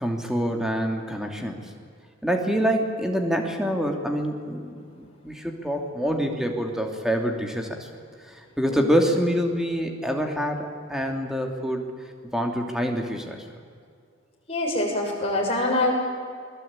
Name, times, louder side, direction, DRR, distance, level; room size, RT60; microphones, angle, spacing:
voice 1, 0.0-1.7 2.2-4.7 5.0-7.9 8.3-11.9 12.3-13.4, equal, 5° right, 3 dB, 2.9 m, -26 dB
voice 2, 14.5-15.9, left 1 dB, 30° left, -1 dB, 6.9 m, -25 dB
28.5 x 21.0 x 8.9 m, 2.1 s
head